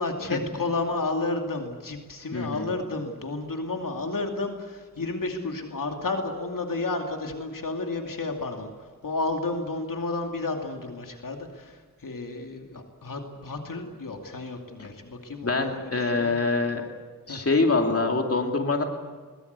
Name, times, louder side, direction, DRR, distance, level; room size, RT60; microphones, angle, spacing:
voice 1, 0.0-16.4 17.3-17.5, left 3 dB, 75° left, 3 dB, 2.6 m, -31 dB
voice 2, 2.3-2.7 14.8-14.9 15.4-16.8 17.3-18.8, left 3 dB, 45° left, 2 dB, 2.6 m, -25 dB
22.0 x 20.0 x 8.2 m, 1.5 s
wide cardioid pair, 80°, 33 cm